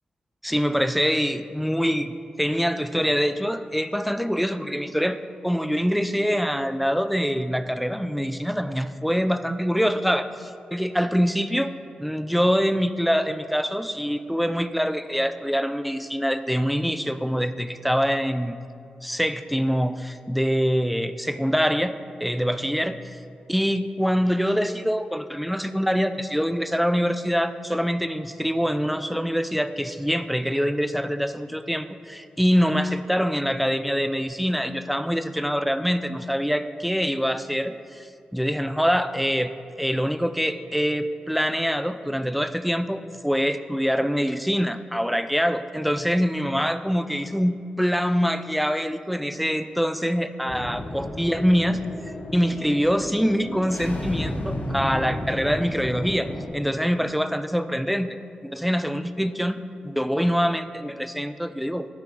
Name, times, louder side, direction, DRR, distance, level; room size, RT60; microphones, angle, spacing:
voice 1, 0.4-5.2 5.4-11.7 12.0-18.6 19.0-23.2 23.5-51.8 52.3-56.3 56.5-58.2 58.4-61.9, equal, ahead, 11 dB, 0.3 m, -24 dB
sound 1, 50.5-56.5, left 1 dB, 55° left, 0.9 m, -32 dB
6.0 x 4.5 x 5.1 m, 2.4 s
cardioid pair, 45°, 3 cm